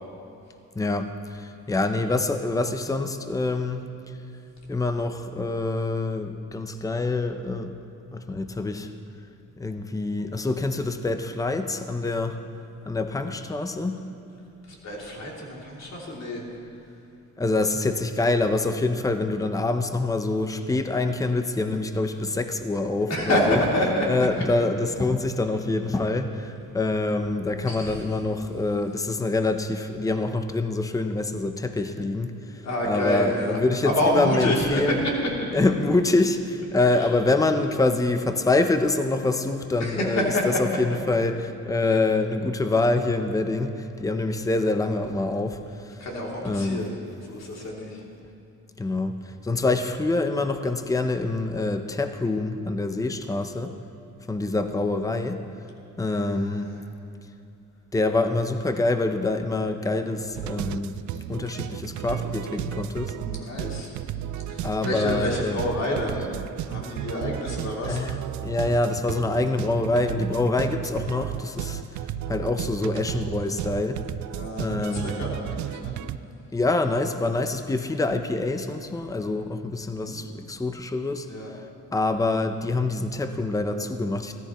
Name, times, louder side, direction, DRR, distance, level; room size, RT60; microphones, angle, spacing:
voice 1, 0.8-3.9 4.7-7.7 8.1-8.9 9.6-12.4 12.8-14.0 17.4-23.6 24.1-35.0 35.5-46.0 46.4-46.8 48.8-53.7 54.3-55.4 56.0-56.7 57.9-61.0 61.3-63.1 64.6-65.6 67.9-68.2 68.4-71.8 72.3-74.0 74.6-75.2 76.5-81.6 81.9-84.4, left 2 dB, 10° left, 8 dB, 0.7 m, -26 dB
voice 2, 14.8-16.4 23.1-24.0 27.7-27.9 32.6-34.9 37.0-37.1 39.8-40.4 46.0-47.0 47.3-48.0 56.0-56.7 63.1-63.9 64.5-66.3 66.7-68.0 74.3-75.9 79.9-80.4 81.3-81.5, left 1 dB, 60° left, -3 dB, 3.0 m, -28 dB
sound 1, 60.4-76.2, right 12 dB, 75° right, 0.4 m, -33 dB
16.0 x 13.5 x 3.1 m, 2.8 s
cardioid pair, 90°, 30 cm